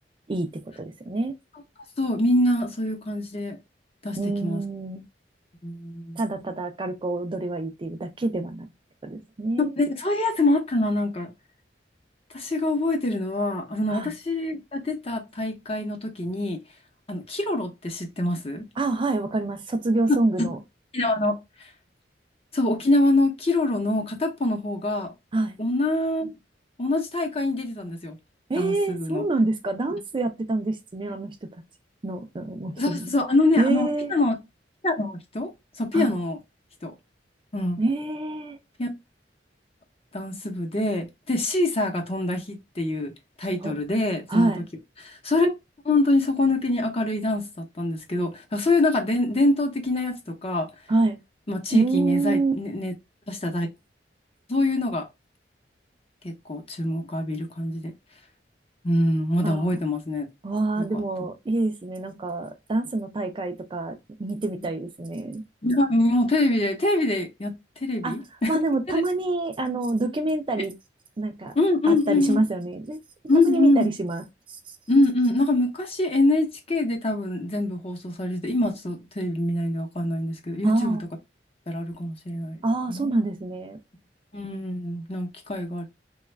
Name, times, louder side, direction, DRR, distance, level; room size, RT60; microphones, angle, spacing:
voice 1, 0.3-1.3 4.2-5.0 6.2-8.7 9.0-9.7 13.9-14.1 18.8-20.6 25.3-25.6 28.5-31.6 32.0-33.1 33.6-34.1 35.9-36.1 37.8-38.6 43.6-43.8 44.3-44.6 50.9-51.2 51.7-52.5 59.4-59.8 60.4-65.4 68.0-68.1 68.5-70.7 71.2-71.5 71.9-73.0 73.3-74.2 80.6-81.0 82.6-83.8, right 2 dB, 30° right, 0.4 m, -26 dB
voice 2, 2.0-3.6 4.0-4.6 5.6-6.2 9.8-11.3 12.3-16.6 17.1-18.7 20.1-20.5 20.9-21.4 22.5-25.1 25.6-26.3 26.8-28.2 28.6-29.2 32.8-34.4 34.8-35.5 35.8-36.4 36.8-36.9 37.5-37.8 38.8-38.9 40.1-43.1 43.4-44.5 45.0-45.5 45.8-50.7 51.5-52.9 53.3-53.7 54.5-55.1 56.2-57.9 58.8-60.3 60.8-61.0 65.6-67.5 67.8-68.6 70.6-70.7 71.6-72.4 73.3-73.9 74.9-81.0 81.7-82.6 82.9-83.1 84.3-85.8, left 2 dB, 35° left, 0.8 m, -24 dB
3.0 x 2.3 x 3.2 m
head